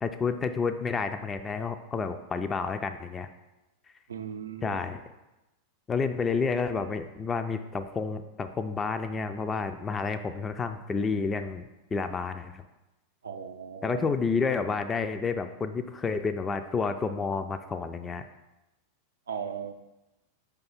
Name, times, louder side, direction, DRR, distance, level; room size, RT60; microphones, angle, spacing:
voice 1, 0.0-3.3 4.6-5.0 5.9-12.6 13.8-18.2, left 4 dB, 20° left, 8 dB, 0.3 m, -30 dB
voice 2, 4.1-4.8 13.2-14.1 19.3-19.7, right 7 dB, 70° right, 7 dB, 0.5 m, -37 dB
5.3 x 3.4 x 5.6 m, 1.0 s
figure-of-eight pair, 90°, 0 cm